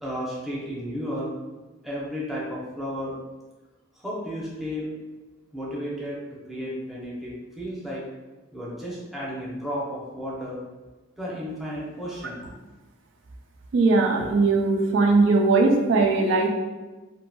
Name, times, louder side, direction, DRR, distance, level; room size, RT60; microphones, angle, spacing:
voice 1, 0.0-1.3 1.8-3.1 4.0-4.9 5.5-6.2 6.5-8.0 8.5-10.6 11.2-12.5, equal, ahead, -7 dB, 0.6 m, -33 dB
voice 2, 13.7-16.5, right 3 dB, 80° right, 2 dB, 0.4 m, -19 dB
2.8 x 2.6 x 2.2 m, 1.2 s
head